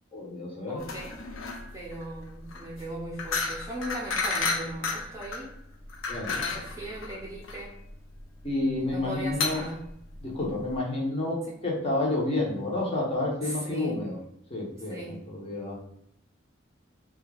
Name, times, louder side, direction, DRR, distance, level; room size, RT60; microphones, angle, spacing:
voice 1, 0.1-0.8 6.1-6.4 8.4-9.6 10.2-14.2 14.5-15.0 15.3-15.8, left 2 dB, 30° left, -4 dB, 0.8 m, -30 dB
voice 2, 0.7-1.2 1.7-5.5 6.3-7.8 8.8-9.8 13.4-14.0 14.9-15.2, right 1 dB, 15° right, -4 dB, 0.6 m, -38 dB
sound 1, 0.8-10.8, left 4 dB, 85° left, 0.6 m, -33 dB
2.8 x 2.3 x 3.3 m, 0.76 s
head